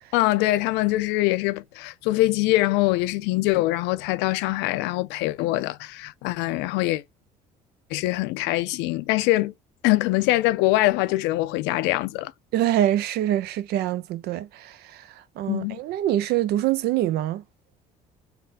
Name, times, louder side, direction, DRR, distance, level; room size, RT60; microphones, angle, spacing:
voice 1, 0.1-7.0 7.9-9.5 9.8-12.3 15.5-15.8, left 18 dB, 80° left, 0.4 m, -23 dB
voice 2, 12.5-17.4, right 12 dB, 70° right, 0.4 m, -25 dB
3.3 x 2.2 x 3.9 m
supercardioid pair, 85°, 17 cm